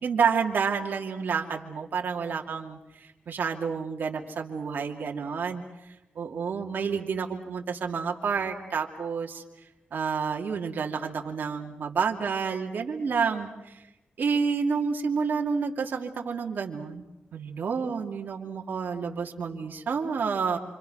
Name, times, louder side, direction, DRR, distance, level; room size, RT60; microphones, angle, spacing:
voice 1, 0.0-5.6 6.2-9.4 9.9-13.8 14.2-17.0 17.3-20.6, right 5 dB, 70° right, 1 dB, 2.5 m, -29 dB
28.0 x 26.0 x 6.2 m, 0.95 s
wide cardioid pair, 110°, 3 cm